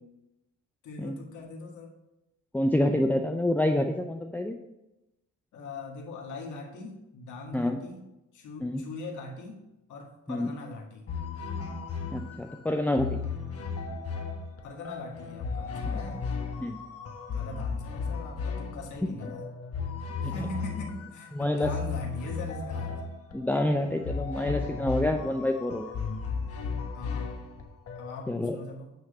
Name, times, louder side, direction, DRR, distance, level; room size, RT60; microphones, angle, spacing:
voice 1, 0.8-2.0 5.5-8.0 8.3-11.1 14.6-16.3 17.3-19.5 20.2-23.0 26.9-27.4 28.0-28.9, left 2 dB, 75° left, 0 dB, 1.9 m, -41 dB
voice 2, 2.5-4.6 7.5-7.8 8.6-8.8 10.3-10.5 12.1-13.2 15.8-16.0 16.6-16.8 20.2-20.3 21.3-21.7 23.3-25.9 28.3-28.6, left 1 dB, 5° left, 4 dB, 0.5 m, -27 dB
sound 1, 11.1-28.3, left 5 dB, 50° left, 1.2 m, -35 dB
9.0 x 3.2 x 6.6 m, 0.94 s
cardioid pair, 90°, 30 cm